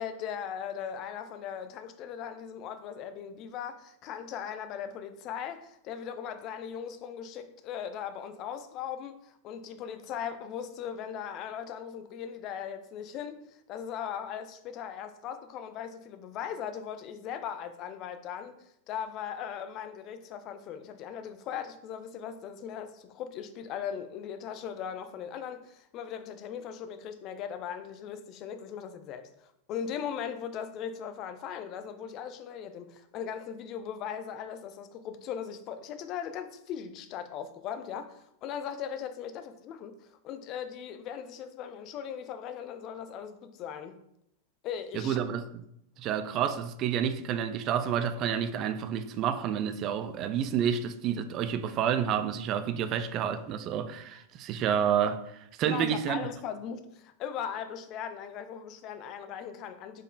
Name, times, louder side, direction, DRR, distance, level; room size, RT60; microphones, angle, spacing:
voice 1, 0.0-18.6 18.9-29.3 29.7-44.0 44.6-45.2 55.6-60.0, left 8 dB, 35° left, 0.4 m, -39 dB
voice 2, 44.9-45.6 46.0-56.2, right 8 dB, 35° right, 0.3 m, -29 dB
5.0 x 4.3 x 2.3 m
figure-of-eight pair, 90°, 0 cm